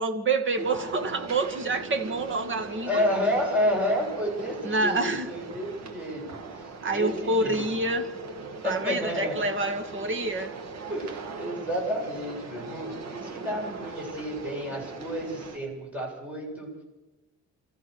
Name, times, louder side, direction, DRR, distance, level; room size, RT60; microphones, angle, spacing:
voice 1, 0.0-3.0 4.6-5.3 6.8-8.1 8.6-10.5, right 2 dB, 40° right, 7 dB, 2.2 m, -27 dB
sound 1, 0.6-15.6, right 4 dB, 65° right, 2.6 m, -40 dB
voice 2, 2.8-7.6 8.6-9.5 10.9-16.7, equal, 5° right, -3 dB, 7.9 m, -30 dB
28.0 x 15.0 x 6.6 m, 1.1 s
cardioid pair, 145°, 29 cm